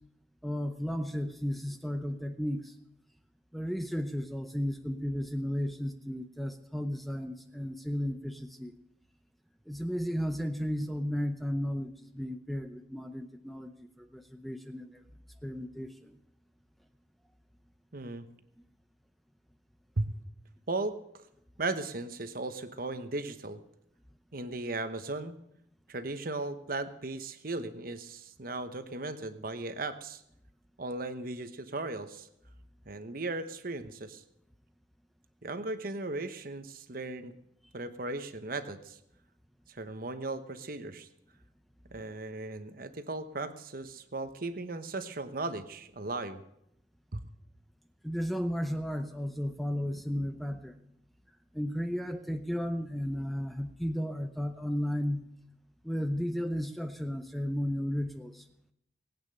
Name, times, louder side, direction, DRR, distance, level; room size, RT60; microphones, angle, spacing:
voice 1, 0.4-2.7 3.5-8.7 9.7-15.0 15.4-16.1 48.0-50.8 51.5-55.2 55.8-58.4, equal, ahead, 7 dB, 0.7 m, -34 dB
voice 2, 17.9-18.2 20.0-20.1 20.7-21.2 21.6-23.6 24.3-25.4 25.9-30.2 30.8-32.3 32.9-34.2 35.4-37.3 37.7-39.0 39.7-41.1 41.9-46.4 47.1-47.2, right 2 dB, 50° right, 10 dB, 1.0 m, -37 dB
20.0 x 8.9 x 6.7 m, 0.77 s
head